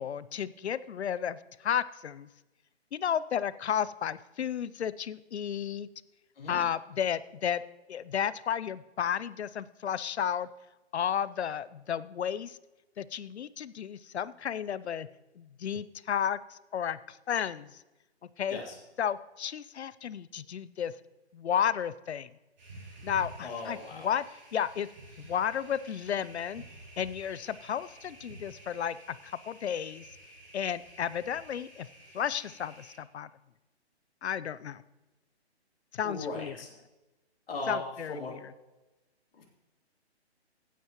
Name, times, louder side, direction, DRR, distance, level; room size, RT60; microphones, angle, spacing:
voice 1, 0.0-2.3 2.9-5.9 6.5-7.6 7.9-10.5 10.9-12.6 13.0-15.1 15.4-17.7 18.4-18.6 19.0-20.9 21.3-22.3 23.0-24.2 24.5-24.9 25.2-26.6 27.0-30.0 30.5-31.9 32.1-33.3 34.2-34.8 35.9-36.6 37.7-38.5, left 8 dB, 75° left, 17 dB, 0.6 m, -33 dB
sound 1, 22.6-33.0, right 2 dB, 40° right, 3.8 m, -51 dB
voice 2, 23.4-24.1 36.0-36.7 37.5-38.3 39.3-39.4, left 3 dB, 60° left, -2 dB, 3.4 m, -37 dB
15.5 x 9.3 x 3.0 m, 1.1 s
hypercardioid pair, 180°, 33 cm